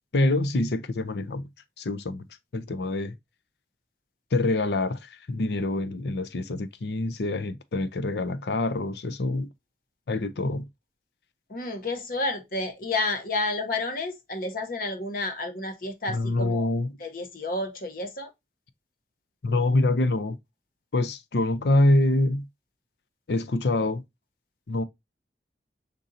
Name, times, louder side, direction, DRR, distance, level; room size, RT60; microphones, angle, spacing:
voice 1, 0.1-1.5 1.8-2.2 2.5-3.1 4.3-9.5 10.1-10.7 16.1-16.9 19.4-20.4 20.9-22.5 23.3-24.0 24.7-24.8, left 2 dB, 70° left, 0.5 m, -25 dB
voice 2, 11.5-16.7 17.0-18.3, left 2 dB, 50° left, 0.9 m, -30 dB
5.3 x 3.8 x 2.6 m
head